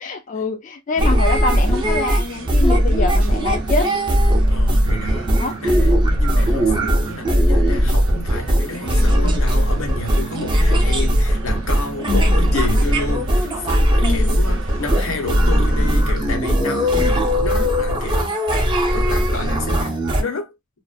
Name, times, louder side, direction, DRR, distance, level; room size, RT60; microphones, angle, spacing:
voice 1, 0.0-3.9 5.4-5.6 12.1-12.4 14.0-14.4, left 3 dB, 40° left, 0.3 m, -25 dB
sound 1, 0.9-16.2, right 3 dB, 70° right, 0.6 m, -34 dB
sound 2, 1.0-20.2, equal, 25° right, 0.6 m, -18 dB
voice 2, 4.5-18.5 18.9-20.5, left 3 dB, 90° left, 0.9 m, -30 dB
2.4 x 2.4 x 2.2 m
head